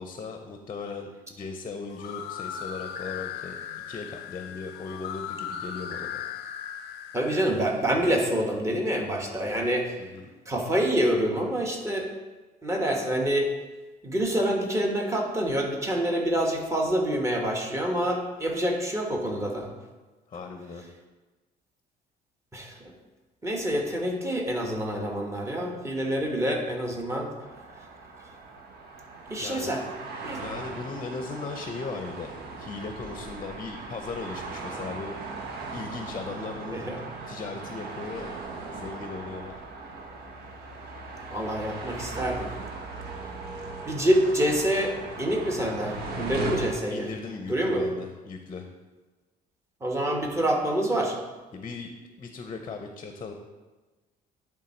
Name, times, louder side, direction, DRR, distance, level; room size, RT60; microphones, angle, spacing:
voice 1, 0.0-3.6 3.9-6.2 10.0-10.3 20.3-20.8 29.4-29.8 30.4-32.3 32.6-35.2 35.7-36.9 37.3-38.3 38.7-39.5 46.9-48.7 51.5-51.9 52.2-53.3, left 4 dB, 30° left, 5 dB, 0.7 m, -37 dB
sound 1, 1.9-7.7, left 9 dB, 75° left, 0.5 m, -37 dB
voice 2, 7.1-9.9 10.5-12.1 12.6-13.5 14.0-19.7 22.5-22.7 23.4-27.3 29.3-29.8 30.2-30.4 36.7-37.0 41.3-42.5 43.9-47.1 47.5-47.8 49.8-51.2, right 1 dB, 15° right, 1 dB, 1.2 m, -26 dB
sound 2, 27.4-46.7, right 3 dB, 70° right, 1.1 m, -38 dB
10.0 x 3.6 x 4.4 m, 1.2 s
cardioid pair, 110°, 17 cm